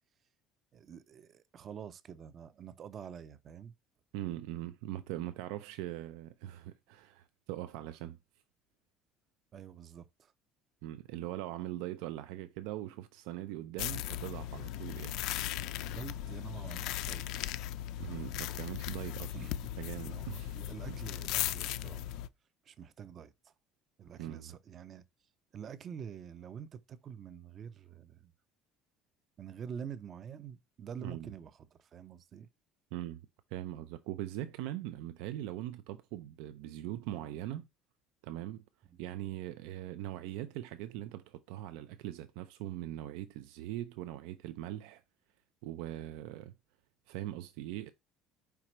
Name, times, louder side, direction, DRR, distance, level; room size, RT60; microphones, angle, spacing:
voice 1, 0.7-3.7 9.5-10.3 15.9-17.4 19.3-19.5 20.0-22.1 22.7-23.5 24.0-25.0 25.5-28.3 29.4-32.5, right 8 dB, 30° right, 0.5 m, -47 dB
voice 2, 4.1-8.2 10.8-15.2 18.0-19.4 19.8-20.6 20.9-21.0 24.2-24.5 31.0-31.3 32.9-33.2 33.5-37.7 38.2-38.6 39.0-45.0 45.6-46.5 47.1-47.9, right 14 dB, 85° right, 0.4 m, -41 dB
sound 1, 13.8-22.3, left 13 dB, 60° left, 0.4 m, -37 dB
4.9 x 4.6 x 4.3 m
cardioid pair, 170°, 0 cm